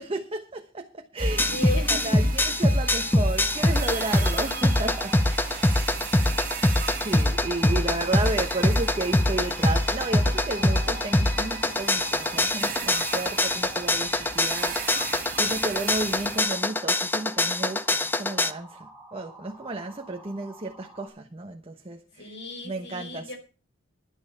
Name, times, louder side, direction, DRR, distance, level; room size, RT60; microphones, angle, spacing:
voice 1, 0.0-5.8 6.9-22.3 22.6-23.3, right 2 dB, 30° right, 1.1 m, -33 dB
sound 1, 1.2-18.5, left 1 dB, 10° left, 0.6 m, -24 dB
sound 2, 1.2-16.4, right 5 dB, 45° right, 1.9 m, -36 dB
voice 2, 1.5-2.4 22.2-23.4, left 1 dB, 60° left, 4.6 m, -35 dB
sound 3, 3.4-21.1, right 2 dB, 5° right, 6.1 m, -48 dB
11.0 x 10.5 x 5.6 m
head